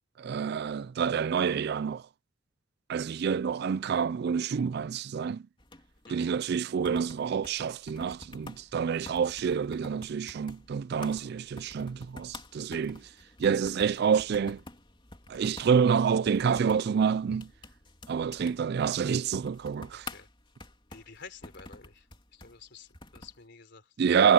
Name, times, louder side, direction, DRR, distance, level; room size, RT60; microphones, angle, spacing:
voice 1, 0.2-2.0 2.9-5.4 6.1-13.1 13.4-14.6 15.3-17.5 18.1-20.1 24.0-24.3, right 6 dB, 55° right, 0.3 m, -27 dB
sound 1, 5.6-23.4, left 2 dB, 25° left, 3.4 m, -49 dB
voice 2, 20.9-22.1 22.3-23.9, left 5 dB, 55° left, 3.8 m, -50 dB
head